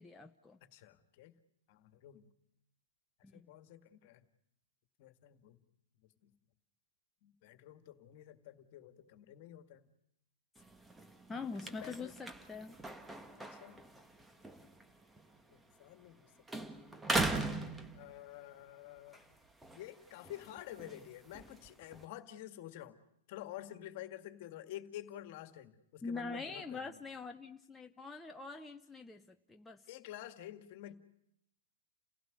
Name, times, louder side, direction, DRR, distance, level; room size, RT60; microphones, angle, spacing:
voice 1, 0.0-0.6 3.2-3.4 11.3-12.8 26.0-29.8, left 4 dB, 10° left, 4 dB, 0.9 m, -44 dB
voice 2, 0.6-1.3 1.7-2.3 3.3-4.2 5.0-5.6 6.2-6.3 7.2-9.9 11.3-12.1 13.5-13.8 15.5-16.3 16.6-16.7 17.9-19.3 19.7-23.0 23.3-27.0 29.9-30.9, left 13 dB, 50° left, 9 dB, 1.9 m, -50 dB
sound 1, 10.6-16.2 16.5-18.5 19.0-22.0, right 2 dB, 10° right, 1.5 m, -41 dB
30.0 x 16.5 x 9.5 m, 0.78 s
figure-of-eight pair, 110°, 0 cm